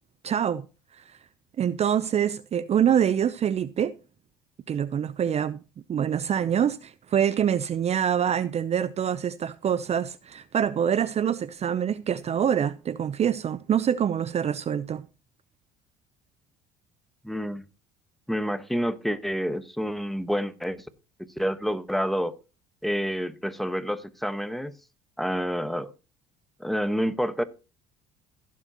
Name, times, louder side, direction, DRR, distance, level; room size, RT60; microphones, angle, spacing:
voice 1, 0.2-0.7 1.0-1.2 1.6-3.9 4.7-5.6 5.9-15.1, right 9 dB, 40° right, 0.6 m, -25 dB
voice 2, 17.2-17.6 18.3-20.9 21.4-22.3 22.8-24.7 25.2-25.9 26.6-27.4, equal, ahead, 1.2 m, -28 dB
15.5 x 7.4 x 2.9 m
hypercardioid pair, 70°, 17 cm